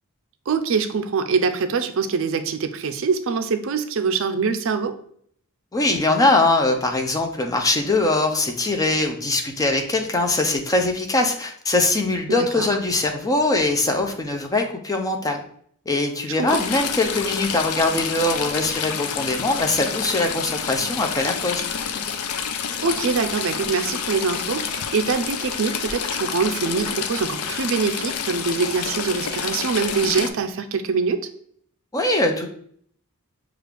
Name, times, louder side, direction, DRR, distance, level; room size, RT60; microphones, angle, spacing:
voice 1, 0.5-4.9 12.3-12.7 16.3-16.5 22.8-31.3, right 5 dB, 60° right, 8 dB, 0.4 m, -24 dB
voice 2, 5.7-15.4 15.9-21.7 31.9-32.5, left 2 dB, 15° left, 3 dB, 0.5 m, -22 dB
Stream / Trickle dribble, 16.5-30.3, left 7 dB, 80° left, 0.5 m, -28 dB
6.2 x 2.4 x 3.4 m, 0.63 s
head